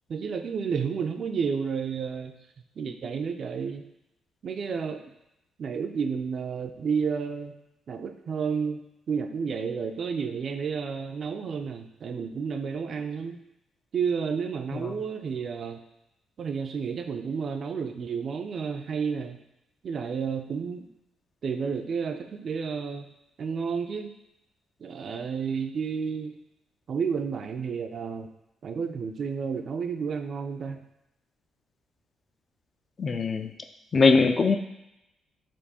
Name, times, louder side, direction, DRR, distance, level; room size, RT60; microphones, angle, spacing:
voice 1, 0.1-2.4 2.8-3.8 4.4-5.1 5.6-7.5 7.9-8.8 9.1-13.4 13.9-15.8 16.4-19.4 19.8-20.9 21.4-23.1 23.4-24.1 24.8-26.3 26.9-28.3 28.6-30.8, right 6 dB, 55° right, 7 dB, 0.4 m, -31 dB
voice 2, 33.0-33.5 33.9-34.6, left 4 dB, 40° left, 7 dB, 0.4 m, -21 dB
4.4 x 2.6 x 4.2 m, 0.86 s
cardioid pair, 90°, 0 cm